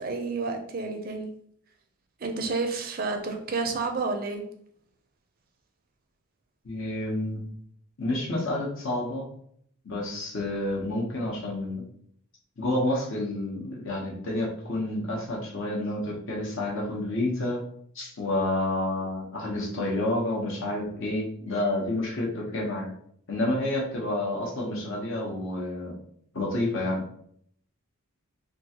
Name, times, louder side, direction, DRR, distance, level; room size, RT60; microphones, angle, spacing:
voice 1, 0.0-1.3 2.2-4.4, right 3 dB, 40° right, 4 dB, 0.4 m, -30 dB
voice 2, 6.6-7.4 8.0-9.2 9.8-11.8 12.6-17.6 17.9-22.9 23.3-26.0 26.3-27.0, left 1 dB, 60° left, -3 dB, 0.8 m, -29 dB
3.0 x 2.4 x 2.8 m, 0.67 s
head